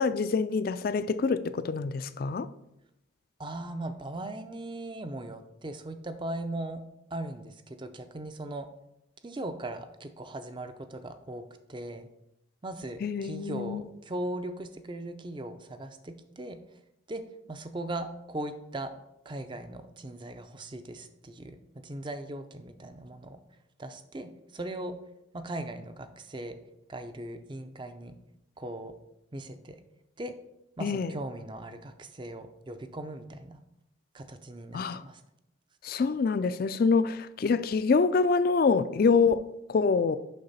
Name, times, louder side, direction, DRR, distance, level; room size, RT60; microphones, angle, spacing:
voice 1, 0.0-2.5 13.0-13.8 30.8-31.1 34.7-35.0 35.8-40.2, left 4 dB, 45° left, 0.3 m, -26 dB
voice 2, 3.4-6.8 7.1-8.7 9.2-12.1 12.6-16.8 17.1-17.2 17.5-18.9 19.2-21.6 21.8-23.4 23.8-25.0 25.3-26.6 26.9-28.2 28.6-28.9 29.3-29.8 30.2-30.3 30.8-33.6 34.1-35.2, right 1 dB, 25° right, 0.5 m, -39 dB
6.7 x 5.8 x 4.1 m
head